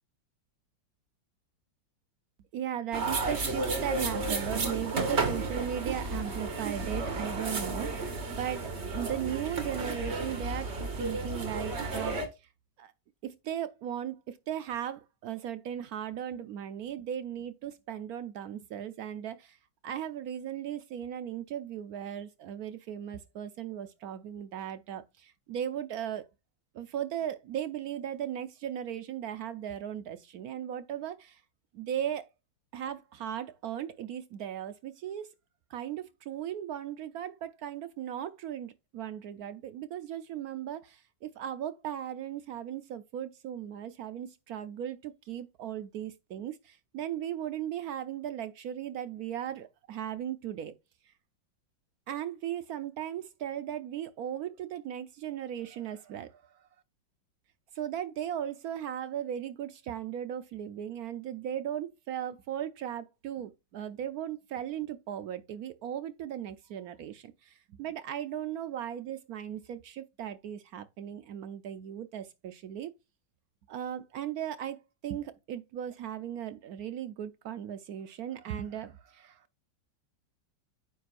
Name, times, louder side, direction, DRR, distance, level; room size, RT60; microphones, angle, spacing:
voice 1, 2.5-12.5 12.8-12.9 13.2-19.6 19.8-26.3 26.7-31.4 31.7-32.3 32.7-35.3 35.7-50.7 51.1-51.2 52.1-56.6 57.7-72.9 73.7-79.5, right 10 dB, 75° right, 0.8 m, -37 dB
sound 1, 2.9-12.3, right 3 dB, 35° right, 1.7 m, -32 dB
9.3 x 6.0 x 2.4 m
omnidirectional pair, 2.1 m